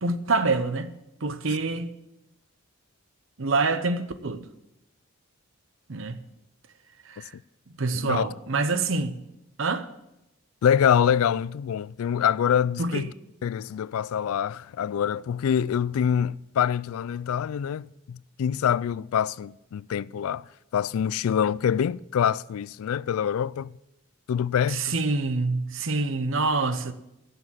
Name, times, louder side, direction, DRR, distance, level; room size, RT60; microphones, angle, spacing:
voice 1, 0.0-0.9 1.2-1.9 3.4-4.4 5.9-6.2 7.0-7.3 7.8-9.2 9.6-9.9 12.8-13.1 24.7-26.9, right 3 dB, 65° right, 0.9 m, -26 dB
voice 2, 7.9-8.3 10.6-13.1 13.4-20.4 20.7-23.7 24.3-25.0, left 8 dB, 80° left, 0.3 m, -25 dB
12.0 x 6.9 x 7.5 m
head